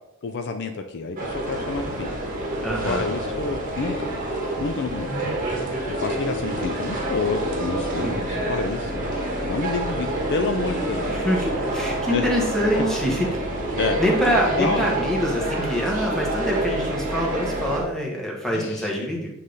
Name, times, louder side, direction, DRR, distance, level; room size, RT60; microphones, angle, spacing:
voice 1, 0.2-2.1 2.8-4.1 4.6-5.1 6.0-9.0 9.4-11.1 12.1-12.3 13.8-14.0 14.6-14.9 18.4-18.9, left 4 dB, 55° left, 6 dB, 0.4 m, -28 dB
sound 1, 1.2-17.8, right 1 dB, 40° right, 1.2 m, -27 dB
voice 2, 2.6-3.1 5.1-5.3 8.0-8.4 11.1-13.3 14.0-19.3, equal, ahead, -2 dB, 1.3 m, -25 dB
7.6 x 3.3 x 3.9 m, 0.88 s
head